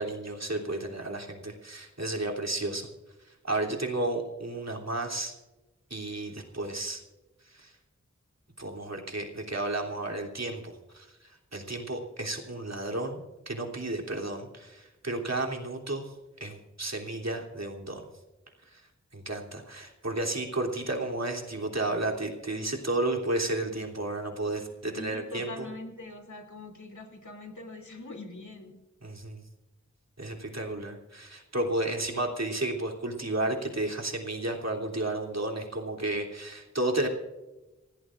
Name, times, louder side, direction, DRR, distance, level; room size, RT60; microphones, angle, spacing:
voice 1, 0.0-2.9 3.3-5.3 5.9-7.0 7.4-7.7 8.6-18.0 18.7-18.8 19.1-25.5 29.0-29.4 30.2-37.1, right 2 dB, 65° right, 0 dB, 3.2 m, -32 dB
voice 2, 24.9-28.7, left 2 dB, 80° left, 2 dB, 3.0 m, -42 dB
27.0 x 17.0 x 2.6 m, 1.1 s
wide cardioid pair, 45°, 29 cm